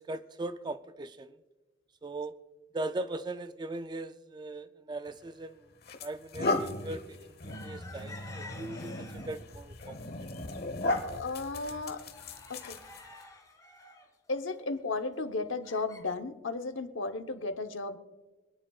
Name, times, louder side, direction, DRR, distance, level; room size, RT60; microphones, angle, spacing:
voice 1, 0.0-1.4 2.0-2.4 2.7-5.6 6.0-10.0, right 2 dB, 20° right, 0.4 m, -39 dB
sound 1, 5.1-5.2 5.8-13.2, left 2 dB, 55° left, 1.1 m, -36 dB
sound 2, 7.5-9.5 9.9-10.6 11.0-11.1 11.4-16.0, left 3 dB, 20° left, 2.4 m, -51 dB
voice 2, 11.0-12.0 12.5-12.8 14.3-18.0, left 3 dB, 85° left, 1.0 m, -34 dB
26.5 x 10.0 x 2.4 m
head